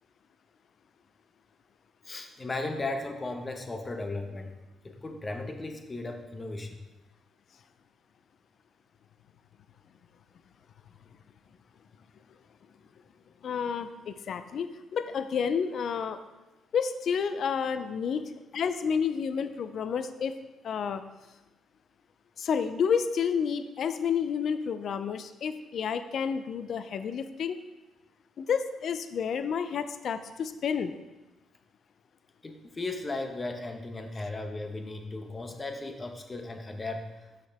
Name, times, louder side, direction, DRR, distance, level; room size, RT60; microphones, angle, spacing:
voice 1, 2.0-4.5 4.8-6.8 32.4-37.2, left 2 dB, 25° left, 5 dB, 0.9 m, -36 dB
voice 2, 13.4-16.2 16.7-18.2 18.5-20.3 20.6-21.0 22.4-27.6 28.4-30.9, left 6 dB, 60° left, 11 dB, 0.4 m, -30 dB
6.1 x 5.8 x 3.5 m, 1.1 s
cardioid pair, 90°, 0 cm